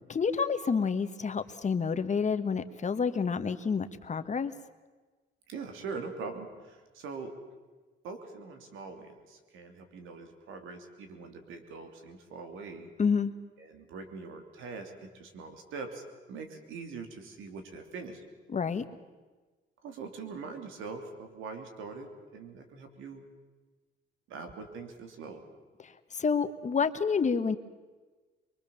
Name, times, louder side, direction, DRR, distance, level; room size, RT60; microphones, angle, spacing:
voice 1, 0.1-4.5 13.0-13.3 18.5-18.8 26.2-27.6, left 5 dB, 35° left, 9 dB, 1.5 m, -28 dB
voice 2, 5.5-7.4 8.0-12.9 13.6-18.2 19.8-23.2 24.3-25.4, right 4 dB, 90° right, 6 dB, 3.2 m, -43 dB
24.0 x 23.5 x 7.2 m, 1.3 s
cardioid pair, 90°, 20 cm